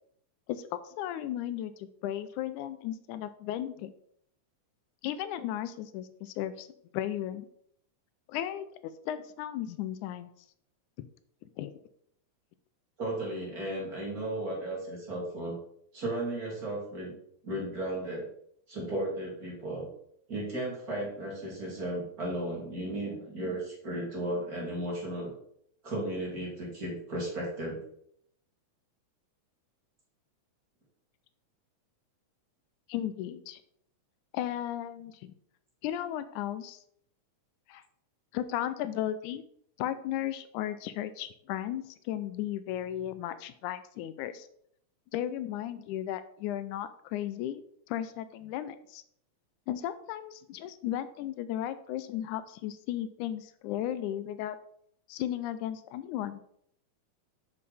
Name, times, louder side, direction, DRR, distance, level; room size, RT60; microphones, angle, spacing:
voice 1, 0.5-3.9 5.0-6.7 6.9-7.5 8.3-10.3 11.6-11.7 32.9-33.6 34.3-35.3 35.8-36.8 37.7-37.8 38.3-39.4 39.8-44.5 45.1-49.0 49.7-54.6 55.1-56.4, left 11 dB, 85° left, 13 dB, 2.0 m, -35 dB
voice 2, 13.0-15.6 15.9-17.1 17.4-18.3 18.7-19.9 20.3-25.3 25.8-27.8, right 1 dB, 30° right, -4 dB, 2.8 m, -35 dB
7.4 x 6.5 x 4.2 m, 0.69 s
omnidirectional pair, 3.5 m